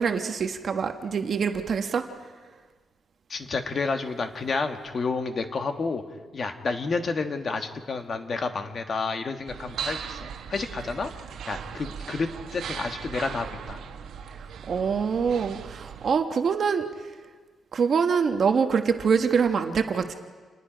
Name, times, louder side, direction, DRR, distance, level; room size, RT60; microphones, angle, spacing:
voice 1, 0.0-2.0 14.4-16.8 17.7-20.1, right 6 dB, 45° right, 6 dB, 1.1 m, -25 dB
voice 2, 3.3-6.0 6.3-11.1 11.5-13.8, left 4 dB, 40° left, 6 dB, 1.4 m, -30 dB
sound 1, 9.5-16.1, right 7 dB, 75° right, 1.2 m, -38 dB
28.0 x 19.5 x 5.1 m, 1.4 s
wide cardioid pair, 155°, 0 cm